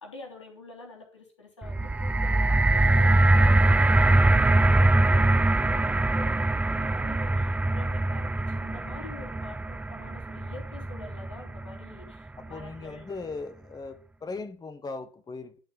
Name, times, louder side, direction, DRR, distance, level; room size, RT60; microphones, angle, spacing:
voice 1, 0.0-13.1, left 3 dB, 85° left, 3.3 m, -46 dB
sound 1, 1.6-11.8 12.6-12.7, right 2 dB, 10° right, 0.5 m, -23 dB
voice 2, 12.4-15.6, left 3 dB, 25° left, 1.6 m, -38 dB
12.0 x 4.7 x 8.0 m
figure-of-eight pair, 60°, 15 cm